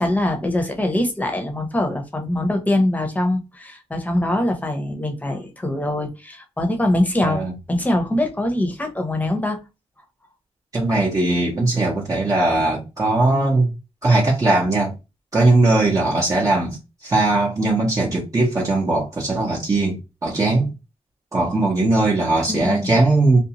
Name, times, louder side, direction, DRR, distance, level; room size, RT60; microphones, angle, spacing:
voice 1, 0.0-7.4 7.7-9.6 22.5-23.0, left 1 dB, 15° left, 0.9 m, -23 dB
voice 2, 7.2-7.5 10.7-13.7 14.0-14.9 15.3-20.7 21.3-23.4, right 2 dB, 30° right, 0.8 m, -19 dB
2.6 x 2.3 x 2.8 m
cardioid pair, 90°, 12 cm